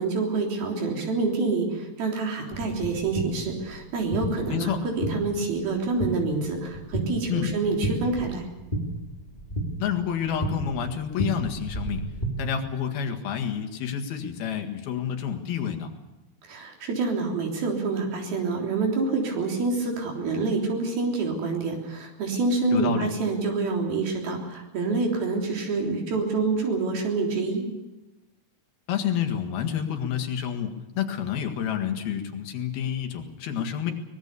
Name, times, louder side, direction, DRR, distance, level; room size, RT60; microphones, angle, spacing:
voice 1, 0.0-8.5 16.5-27.6, right 3 dB, 85° right, 0 dB, 5.5 m, -27 dB
sound 1, 2.5-12.3, right 1 dB, 10° left, 3.7 m, -33 dB
voice 2, 9.8-12.0 12.4-15.9 22.7-23.1 28.9-33.9, left 8 dB, 85° left, 5 dB, 3.8 m, -29 dB
23.5 x 20.5 x 6.9 m, 1.0 s
omnidirectional pair, 4.2 m